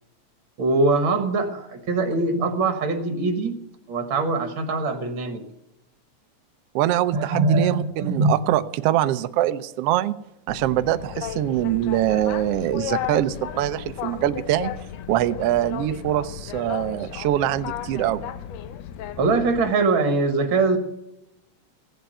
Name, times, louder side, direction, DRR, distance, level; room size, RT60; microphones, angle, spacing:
voice 1, 0.6-3.6 3.9-5.5 7.1-8.3 19.2-20.8, right 3 dB, 50° right, 6 dB, 1.9 m, -22 dB
voice 2, 6.7-10.1 10.5-14.7 15.1-18.2, right 13 dB, 75° right, 11 dB, 1.4 m, -23 dB
Boat Water vehicle, 10.5-19.7, left 10 dB, 75° left, 1.8 m, -34 dB
16.0 x 8.0 x 9.0 m, 0.89 s
omnidirectional pair, 3.4 m